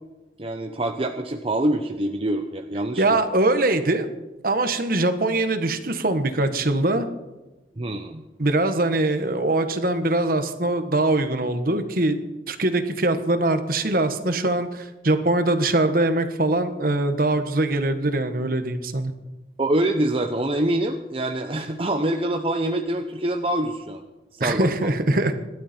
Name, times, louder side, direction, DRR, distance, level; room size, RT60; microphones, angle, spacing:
voice 1, 0.4-3.2 7.8-8.2 19.6-24.0 24.3-24.9, right 1 dB, 30° right, 5 dB, 0.8 m, -25 dB
voice 2, 3.0-4.1 4.4-7.0 8.4-12.2 12.5-19.1 24.4-25.3, right 2 dB, 55° right, 9 dB, 1.4 m, -22 dB
25.5 x 12.5 x 4.5 m, 1.1 s
head